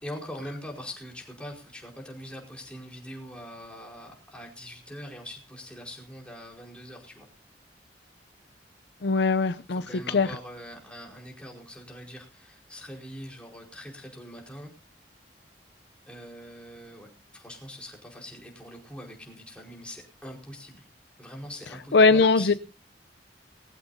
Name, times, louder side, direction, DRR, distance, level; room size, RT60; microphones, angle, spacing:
voice 1, 0.0-7.3 9.7-14.7 16.1-20.8 21.2-22.6, equal, 5° left, 0 dB, 4.7 m, -42 dB
voice 2, 9.0-10.3 21.9-22.5, left 4 dB, 70° left, 13 dB, 0.6 m, -21 dB
21.0 x 15.0 x 2.7 m, 0.32 s
head